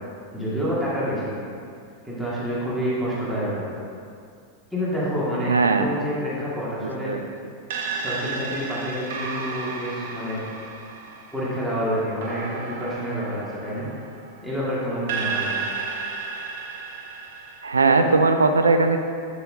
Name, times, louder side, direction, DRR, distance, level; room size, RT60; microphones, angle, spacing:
voice 1, 0.3-1.3 2.0-3.6 4.7-7.1 8.0-10.4 11.3-13.9 14.4-15.5, equal, ahead, -9 dB, 2.0 m, -28 dB
voice 2, 5.5-5.9 6.8-7.2 17.6-19.0, right 3 dB, 75° right, 7 dB, 0.5 m, -19 dB
sound 1, 7.7-14.5 15.1-17.6, right 4 dB, 55° right, 0.9 m, -33 dB
8.4 x 7.7 x 2.7 m, 2.3 s
figure-of-eight pair, 90°, 0 cm